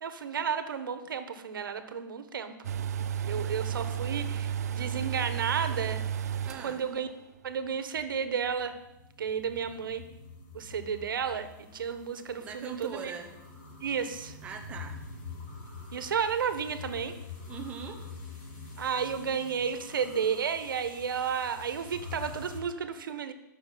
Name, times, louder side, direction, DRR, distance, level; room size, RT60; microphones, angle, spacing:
voice 1, 0.0-2.5 3.2-6.0 6.6-7.1 7.4-8.7 9.2-10.0 10.5-13.1 13.8-14.4 15.9-17.1 18.8-23.3, right 7 dB, 80° right, 10 dB, 1.4 m, -32 dB
sound 1, 2.6-7.1 7.4-7.5, right 8 dB, 50° right, 0.6 m, -33 dB
voice 2, 6.4-6.8 12.4-13.3 14.4-15.0 17.5-18.0, right 7 dB, 10° right, 3 dB, 0.9 m, -40 dB
sound 2, 7.4-22.6, left 4 dB, 35° left, 2.5 m, -46 dB
12.0 x 6.5 x 9.3 m, 0.96 s
hypercardioid pair, 180°, 11 cm